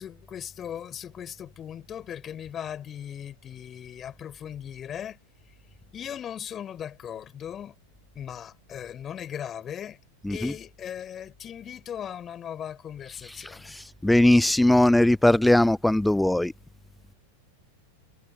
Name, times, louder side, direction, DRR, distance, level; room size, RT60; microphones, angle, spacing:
voice 1, 0.0-5.2 5.9-7.7 8.1-10.0 10.3-13.7, left 9 dB, 25° left, 4.4 m, -38 dB
voice 2, 14.0-16.5, left 1 dB, 5° left, 0.3 m, -19 dB
figure-of-eight pair, 90°, 0 cm